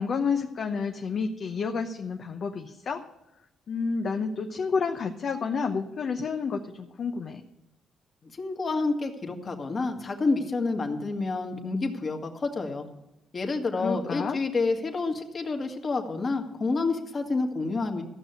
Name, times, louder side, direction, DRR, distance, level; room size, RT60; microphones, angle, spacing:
voice 1, 0.0-3.0 3.7-7.4 13.8-14.4, left 5 dB, 55° left, 4 dB, 0.9 m, -30 dB
voice 2, 8.2-12.9 13.3-18.0, left 3 dB, 40° left, 3 dB, 1.9 m, -29 dB
14.5 x 6.4 x 8.1 m, 0.90 s
cardioid pair, 90°, 0 cm